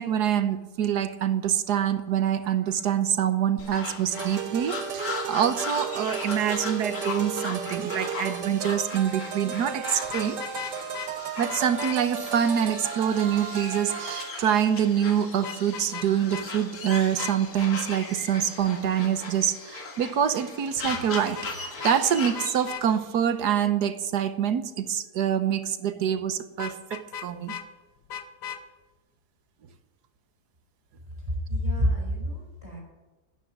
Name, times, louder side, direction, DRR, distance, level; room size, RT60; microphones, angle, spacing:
voice 1, 0.0-10.4 11.4-27.6, right 9 dB, 70° right, 11 dB, 1.5 m, -26 dB
sound 1, 3.6-22.7, left 4 dB, 60° left, 2.2 m, -38 dB
sound 2, 4.1-14.4, right 7 dB, 85° right, 1.6 m, -35 dB
Vehicle horn car horn honking, 10.0-11.1 11.5-12.0 15.4-16.1 16.3-16.5 16.9-17.3 20.8-21.5 21.8-22.0 22.3-22.8 26.6-27.6 28.1-28.6, left 8 dB, 80° left, 1.7 m, -36 dB
voice 2, 31.3-32.8, equal, 25° right, -1 dB, 4.7 m, -27 dB
12.5 x 10.0 x 9.3 m, 1.1 s
omnidirectional pair, 1.8 m